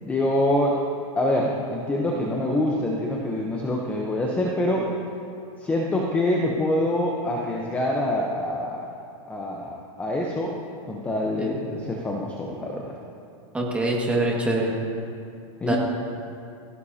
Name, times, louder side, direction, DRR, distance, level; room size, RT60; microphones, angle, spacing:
voice 1, 0.0-0.8 1.2-4.9 5.6-8.9 9.3-10.6 10.9-13.0 15.6-15.8, left 1 dB, 10° left, -1 dB, 0.9 m, -25 dB
voice 2, 13.5-14.7 15.7-15.8, right 2 dB, 5° right, -3 dB, 2.0 m, -24 dB
18.0 x 16.0 x 2.9 m, 2.5 s
supercardioid pair, 150°, 17 cm